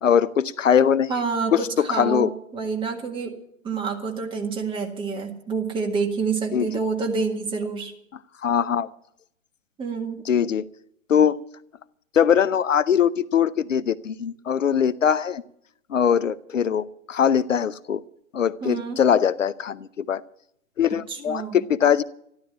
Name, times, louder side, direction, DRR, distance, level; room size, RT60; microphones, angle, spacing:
voice 1, 0.0-1.1 1.5-2.3 6.5-6.7 8.4-8.9 10.3-10.7 11.1-11.4 12.1-15.4 15.9-18.0 18.3-20.2 20.8-22.0, left 8 dB, 65° left, 16 dB, 0.7 m, -21 dB
voice 2, 1.1-3.4 3.6-7.9 9.8-10.2 18.6-19.0 20.9-21.6, right 4 dB, 10° right, 2 dB, 1.8 m, -28 dB
13.5 x 13.0 x 7.2 m, 0.73 s
figure-of-eight pair, 125°, 40 cm